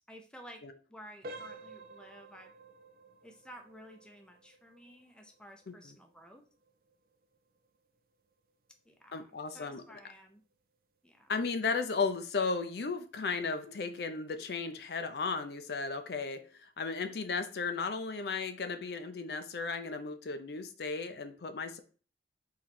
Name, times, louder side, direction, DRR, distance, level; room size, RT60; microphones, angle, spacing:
voice 1, 0.0-0.6 0.9-2.5 3.2-6.4 8.9-10.4 11.0-11.3, equal, 5° left, 4 dB, 0.5 m, -53 dB
sound 1, 1.2-11.9 12.3-12.5 13.1-13.2 13.7-13.8, right 2 dB, 55° right, 0.4 m, -54 dB
voice 2, 9.1-10.0 11.3-21.8, left 4 dB, 65° left, 8 dB, 0.5 m, -35 dB
3.9 x 3.1 x 4.3 m, 0.39 s
head